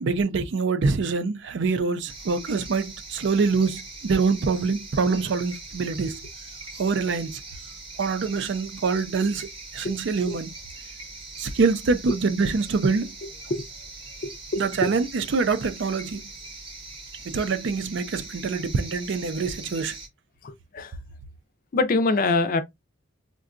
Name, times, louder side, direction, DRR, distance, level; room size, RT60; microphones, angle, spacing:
voice 1, 0.0-6.2 6.8-7.4 8.0-10.5 11.4-13.1 14.6-16.2 17.3-20.0, right 4 dB, 65° right, 0.4 m, -25 dB
sound 1, 2.1-20.1, right 3 dB, 25° right, 0.8 m, -41 dB
voice 2, 14.2-14.9 20.4-20.9 21.7-22.6, left 3 dB, 45° left, 0.4 m, -25 dB
3.6 x 2.2 x 2.4 m
head